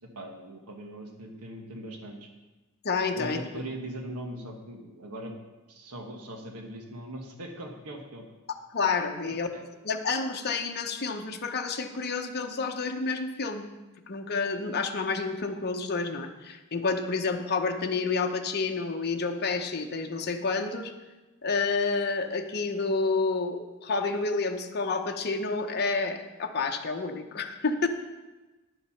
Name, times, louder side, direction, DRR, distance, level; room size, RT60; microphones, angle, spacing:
voice 1, 0.1-2.3 3.1-5.3 5.7-8.2 9.5-9.6, right 1 dB, 80° right, 3 dB, 1.4 m, -40 dB
voice 2, 2.8-3.4 8.7-9.5 9.8-13.7 14.1-20.9 21.4-27.9, left 4 dB, 50° left, 4 dB, 0.8 m, -29 dB
10.5 x 7.1 x 5.8 m, 1.1 s
head